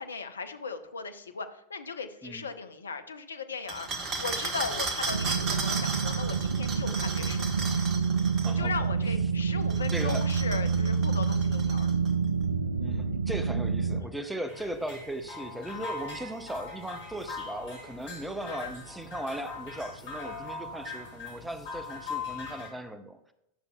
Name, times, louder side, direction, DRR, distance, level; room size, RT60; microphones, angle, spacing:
voice 1, 0.0-3.9 4.2-7.5 8.5-11.9 18.5-18.7, left 5 dB, 75° left, 8 dB, 0.7 m, -37 dB
sound 1, 3.7-8.6 9.6-12.1, right 3 dB, 30° right, 1.3 m, -35 dB
sound 2, 5.1-14.0, right 5 dB, 75° right, 0.4 m, -28 dB
voice 2, 9.6-10.3 12.8-23.3, right 1 dB, 5° right, 8 dB, 0.7 m, -38 dB
sound 3, 14.5-22.7, left 4 dB, 50° left, 3.2 m, -40 dB
10.5 x 6.7 x 2.3 m, 0.82 s
figure-of-eight pair, 90°, 0 cm